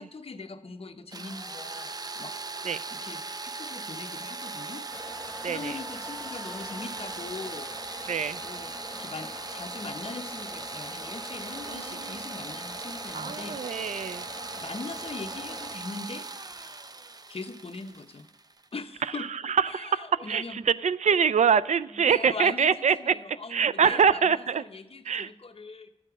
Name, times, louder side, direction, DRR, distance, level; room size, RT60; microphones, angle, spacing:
voice 1, 0.0-4.8 5.4-8.0 8.4-8.7 9.0-13.9 14.2-16.3 17.3-18.3 18.7-19.3 19.6-20.6 21.9-25.9, left 3 dB, 55° left, 6 dB, 1.0 m, -41 dB
sound 1, 1.1-18.8, right 3 dB, 35° right, 0.5 m, -39 dB
sound 2, 4.9-15.8, left 2 dB, 20° left, 0.9 m, -45 dB
voice 2, 5.4-5.8 8.1-8.4 11.7-12.2 13.1-14.3 19.2-23.2 23.5-24.6 25.1-25.3, right 7 dB, 85° right, 15 dB, 0.4 m, -25 dB
13.0 x 7.6 x 4.8 m, 0.95 s
wide cardioid pair, 100°, 12 cm